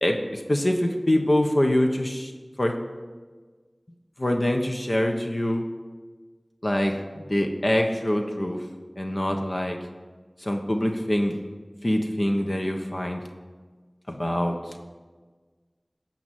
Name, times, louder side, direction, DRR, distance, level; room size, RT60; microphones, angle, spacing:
voice 1, 0.0-2.3 2.6-2.8 4.2-5.7 6.6-8.6 9.0-9.8 10.4-11.3 11.8-13.2 14.1-14.6, left 1 dB, 50° left, 3 dB, 1.2 m, -24 dB
15.0 x 6.0 x 9.2 m, 1.4 s
wide cardioid pair, 40°, 0 cm